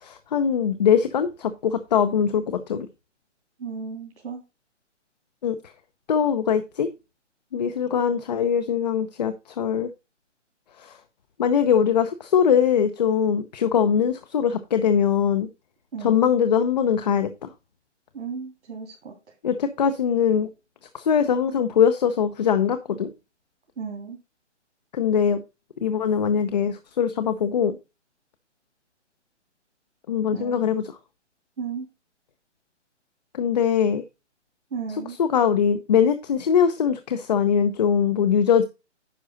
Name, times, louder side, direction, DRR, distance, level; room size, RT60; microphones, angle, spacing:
voice 1, 0.0-2.9 5.4-5.6 6.1-6.9 7.5-9.9 10.8-10.9 11.4-15.5 16.0-17.5 19.4-20.5 20.9-23.1 24.9-25.4 25.8-27.7 30.1-30.8 33.3-34.0 35.2-38.6, left 7 dB, 35° left, 0.7 m, -22 dB
voice 2, 3.6-4.4 15.9-16.3 18.1-19.2 23.8-24.2 30.3-30.7 31.6-31.9 34.7-35.2, right 6 dB, 70° right, 3.1 m, -34 dB
10.0 x 5.4 x 3.9 m
hypercardioid pair, 160°, 36 cm